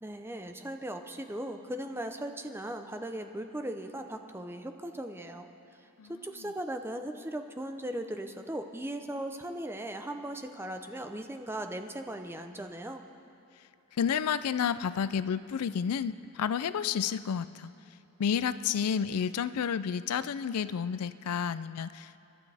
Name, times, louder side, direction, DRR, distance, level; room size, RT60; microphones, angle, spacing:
voice 1, 0.0-5.5 6.1-13.0, right 1 dB, 10° right, 6 dB, 0.6 m, -38 dB
voice 2, 13.9-17.7 18.2-22.2, left 7 dB, 90° left, 15 dB, 0.4 m, -30 dB
29.5 x 12.0 x 3.4 m, 2.8 s
head